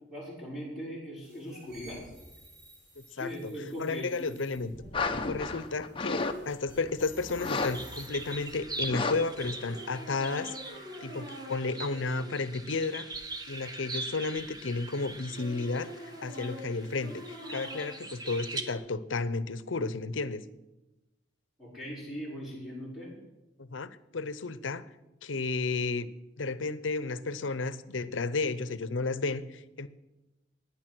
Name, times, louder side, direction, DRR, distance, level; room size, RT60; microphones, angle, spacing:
voice 1, 0.1-2.0 3.1-4.3 21.6-23.2, equal, ahead, -6 dB, 6.1 m, -40 dB
sound 1, 1.2-12.5 12.8-13.7 14.1-14.4 15.0-18.8, left 1 dB, 50° right, 6.9 m, -47 dB
voice 2, 3.0-3.5 3.8-4.7 5.3-10.6 11.0-13.1 13.5-20.4 23.6-24.8 25.2-26.1 26.4-29.9, left 3 dB, 85° left, 15 dB, 0.8 m, -33 dB
sound 2, 4.9-6.3 6.6-6.9 7.3-7.7 8.1-8.2 8.8-9.1 9.4-9.5, left 3 dB, 30° left, 0.9 m, -31 dB
sound 3, 7.6-18.6, right 3 dB, 20° right, 1.2 m, -42 dB
15.5 x 10.0 x 6.1 m, 1.0 s
head